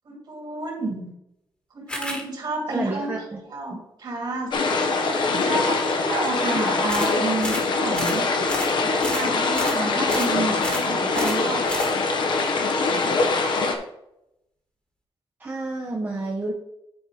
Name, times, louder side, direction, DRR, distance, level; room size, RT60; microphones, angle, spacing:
voice 1, 0.1-1.1 1.7-3.1 3.5-4.5 5.3-8.3 8.8-11.7 12.1-12.3, right 3 dB, 50° right, 0 dB, 2.4 m, -30 dB
sound 1, 1.9-2.2 6.9-7.1 7.4-7.7 7.9-8.2 8.5-8.7 9.0-9.3 9.5-9.8 10.1-10.3 10.6-10.9 11.1-11.4 11.7-11.9, equal, 10° left, 1.6 m, -32 dB
voice 2, 2.7-3.4 15.4-16.5, right 2 dB, 20° right, -2 dB, 0.9 m, -29 dB
sound 2, 4.5-13.7, left 3 dB, 55° left, 1.1 m, -23 dB
9.7 x 4.5 x 4.8 m, 0.82 s
wide cardioid pair, 180°, 9 cm